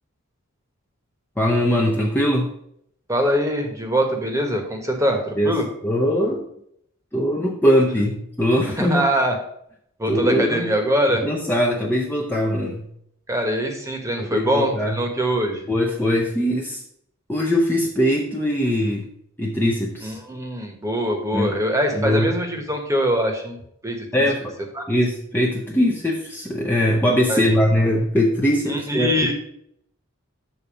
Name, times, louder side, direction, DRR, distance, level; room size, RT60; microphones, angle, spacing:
voice 1, 1.4-2.5 5.4-5.5 5.8-6.5 7.1-9.1 10.1-10.7 11.2-12.9 14.2-15.0 15.7-16.8 17.3-19.1 19.4-20.2 21.3-21.5 21.9-22.3 24.1-24.5 24.9-29.2, equal, 10° left, -2 dB, 0.7 m, -21 dB
voice 2, 3.1-5.7 8.8-9.4 10.0-11.2 13.3-15.6 20.0-23.6 23.8-24.3 24.7-24.8 27.3-27.5 28.7-29.3, equal, 15° right, 3 dB, 1.2 m, -23 dB
7.0 x 4.1 x 6.5 m, 0.71 s
head